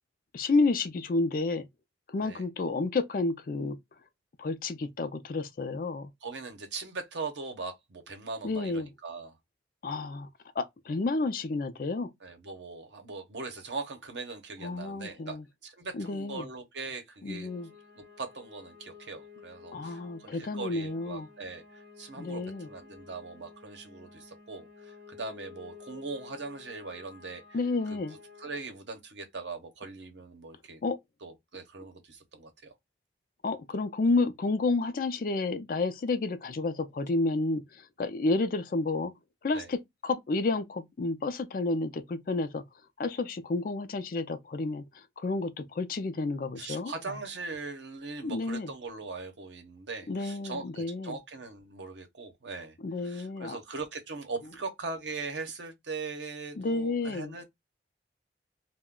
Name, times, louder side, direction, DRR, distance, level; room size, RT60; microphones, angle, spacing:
voice 1, 0.3-1.7 2.1-3.8 4.4-6.1 8.4-8.9 9.8-10.3 10.6-12.1 14.6-15.4 15.9-16.5 17.2-17.7 19.7-21.3 22.2-22.7 27.5-28.2 30.8-31.0 33.4-39.1 39.4-42.6 43.0-47.2 48.2-48.7 50.1-51.2 52.8-53.6 56.6-57.4, left 3 dB, 50° left, 0.4 m, -30 dB
voice 2, 6.2-9.4 12.2-17.5 18.0-27.4 27.9-28.0 28.4-30.8 31.2-32.7 39.5-39.7 46.6-52.8 53.0-57.4, right 4 dB, 85° right, 0.8 m, -40 dB
sound 1, 17.4-28.6, left 5 dB, 45° right, 0.9 m, -52 dB
2.3 x 2.1 x 3.6 m
head